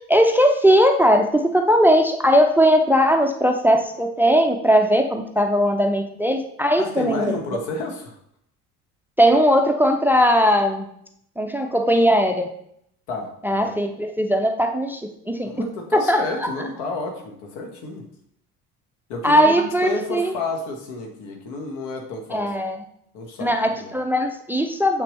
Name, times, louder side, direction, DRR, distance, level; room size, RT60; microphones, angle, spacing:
voice 1, 0.1-7.3 9.2-10.9 11.4-12.5 13.4-15.0 15.3-15.7 16.1-16.5 19.2-20.3 22.3-22.8 23.4-25.0, equal, 5° right, 5 dB, 0.5 m, -19 dB
voice 2, 6.8-8.2 13.1-13.7 15.4-18.1 19.1-22.5 23.1-23.9, left 3 dB, 55° left, 3 dB, 1.5 m, -30 dB
6.8 x 5.9 x 3.2 m, 0.72 s
figure-of-eight pair, 55°, 47 cm